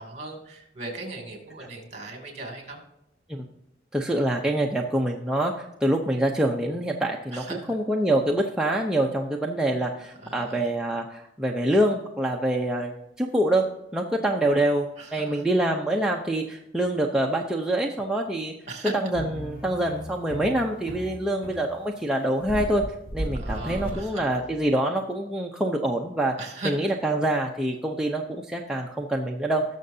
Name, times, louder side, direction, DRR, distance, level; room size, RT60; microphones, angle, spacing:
voice 1, 0.0-2.8 7.3-7.7 10.2-10.7 15.0-15.4 18.7-19.0 23.3-24.2 26.4-26.7, right 2 dB, 40° right, 3 dB, 2.6 m, -37 dB
voice 2, 3.9-13.6 13.9-18.5 18.9-22.8 23.1-26.4 26.6-29.6, right 1 dB, 5° right, -1 dB, 0.7 m, -25 dB
sound 1, 19.1-24.7, right 1 dB, 55° left, 2.4 m, -35 dB
19.0 x 6.4 x 2.7 m, 0.83 s
head